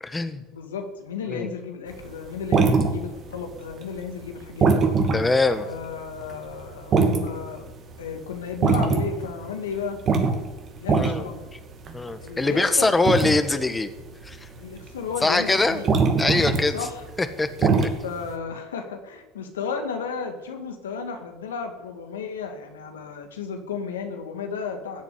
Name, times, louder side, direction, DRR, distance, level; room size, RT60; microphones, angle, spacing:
voice 1, 0.0-0.4 1.3-1.5 5.1-5.7 10.9-11.2 11.9-13.9 14.2-14.5 15.2-15.8 16.2-16.8 17.2-17.9, left 3 dB, 15° left, 9 dB, 1.6 m, -23 dB
voice 2, 0.5-4.8 5.6-7.6 8.0-10.0 10.8-11.5 12.2-12.9 14.6-15.9 16.7-17.0 18.0-25.0, left 6 dB, 90° left, 5 dB, 2.0 m, -33 dB
sound 1, 2.0-3.4 3.7-18.3, right 4 dB, 45° right, 2.6 m, -23 dB
15.5 x 7.2 x 9.9 m, 1.2 s
hypercardioid pair, 80°, 0 cm